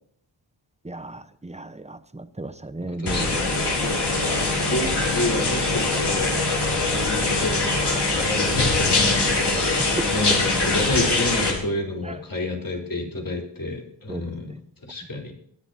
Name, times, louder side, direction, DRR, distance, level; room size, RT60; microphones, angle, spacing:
voice 1, 0.8-3.3 9.8-10.1 12.1-12.2 14.1-14.2, right 2 dB, 15° right, 11 dB, 0.9 m, -34 dB
voice 2, 2.8-7.7 8.1-14.5 14.8-15.3, left 2 dB, 50° left, 0 dB, 3.8 m, -30 dB
sound 1, 3.1-11.5, left 3 dB, 65° left, 3.9 m, -22 dB
21.0 x 11.0 x 2.8 m, 0.65 s
wide cardioid pair, 85°, 44 cm